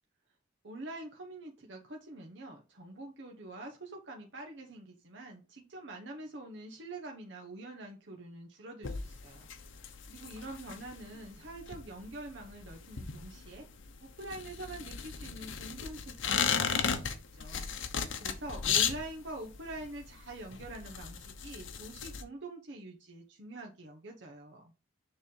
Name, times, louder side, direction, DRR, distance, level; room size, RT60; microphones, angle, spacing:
voice 1, 0.6-13.7 14.0-24.7, right 2 dB, 60° right, 0 dB, 1.0 m, -45 dB
sound 1, 8.8-22.2, left 7 dB, 70° left, 0.9 m, -36 dB
6.8 x 3.4 x 5.4 m, 0.31 s
head